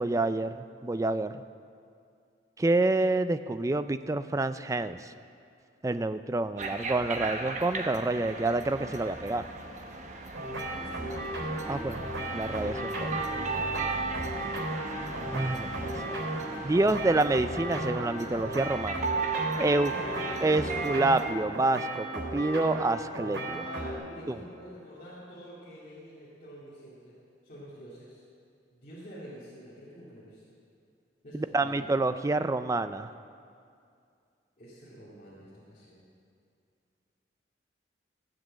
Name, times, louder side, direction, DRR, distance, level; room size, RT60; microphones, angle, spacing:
voice 1, 0.0-1.4 2.6-5.1 5.8-9.4 11.7-13.1 15.3-16.2 16.6-19.1 19.6-19.9 20.4-23.6 24.3-24.4 31.3-33.1, right 2 dB, 15° right, 11 dB, 0.3 m, -28 dB
sound 1, 6.6-21.3, right 3 dB, 40° right, 1.0 m, -36 dB
sound 2, 10.3-23.9, right 1 dB, 85° right, 4.0 m, -35 dB
voice 2, 10.7-11.1 11.7-12.0 13.0-14.3 19.7-20.8 23.6-27.1 27.4-28.2 28.7-30.4 31.2-31.9 34.6-36.0, equal, 45° left, -9 dB, 2.4 m, -46 dB
15.5 x 7.7 x 7.4 m, 2.4 s
head